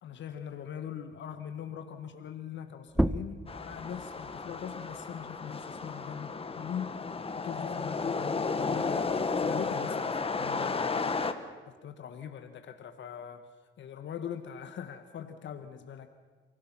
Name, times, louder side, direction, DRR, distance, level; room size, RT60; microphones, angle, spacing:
voice 1, 0.0-7.0 7.3-11.3 11.7-13.5 13.8-16.1, left 8 dB, 65° left, 7 dB, 1.6 m, -42 dB
sound 1, 2.9-8.1 8.5-10.3, right 1 dB, 5° right, 0.7 m, -37 dB
sound 2, 3.5-11.3, left 4 dB, 30° left, 1.5 m, -33 dB
29.5 x 16.5 x 6.2 m, 1.4 s
cardioid pair, 90°, 20 cm